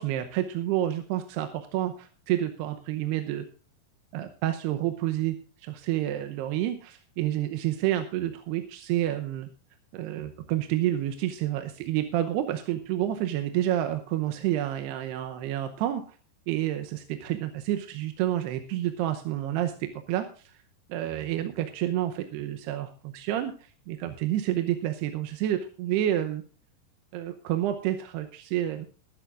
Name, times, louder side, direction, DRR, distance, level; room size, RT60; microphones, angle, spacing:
voice 1, 0.0-3.5 4.1-9.5 9.9-16.2 16.5-20.5 20.9-26.4 27.1-28.9, right 12 dB, 85° right, 7 dB, 2.9 m, -29 dB
20.5 x 10.5 x 2.5 m, 0.39 s
omnidirectional pair, 4.7 m